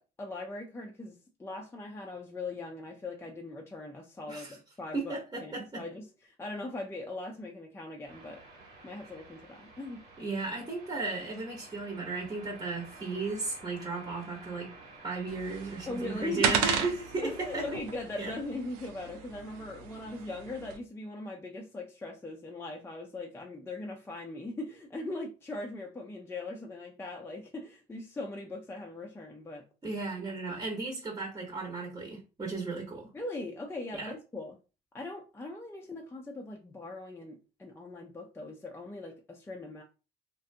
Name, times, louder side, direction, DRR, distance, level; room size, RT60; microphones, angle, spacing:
voice 1, 0.0-8.4 8.8-10.0 15.9-16.6 17.2-29.6 33.1-34.5 34.9-39.8, left 2 dB, 15° left, 0.5 m, -40 dB
voice 2, 4.9-5.8 10.2-14.7 15.0-17.6 18.2-18.3 29.8-33.1 33.9-34.1, right 3 dB, 25° right, 1.0 m, -35 dB
sound 1, 8.0-17.7, right 3 dB, 60° right, 1.2 m, -52 dB
sound 2, 15.3-20.8, right 7 dB, 85° right, 0.4 m, -35 dB
2.4 x 2.2 x 2.6 m
hypercardioid pair, 65°, 19 cm